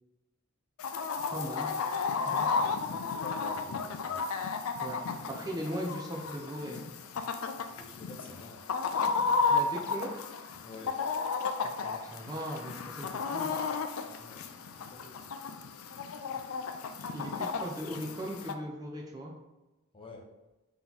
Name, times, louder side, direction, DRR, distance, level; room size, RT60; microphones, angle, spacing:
Chicken rooster, 0.8-18.5, left 4 dB, 70° left, 0.4 m, -33 dB
voice 1, 1.3-1.7 2.1-2.5 4.8-5.0 5.3-6.9 9.5-10.2 11.6-13.6 17.1-19.3, equal, 20° right, -1 dB, 0.5 m, -38 dB
voice 2, 2.5-4.3 7.7-8.7 10.6-11.0 14.1-15.3 19.9-20.3, left 2 dB, 25° left, 0 dB, 0.6 m, -50 dB
3.8 x 3.0 x 3.9 m, 1.0 s
head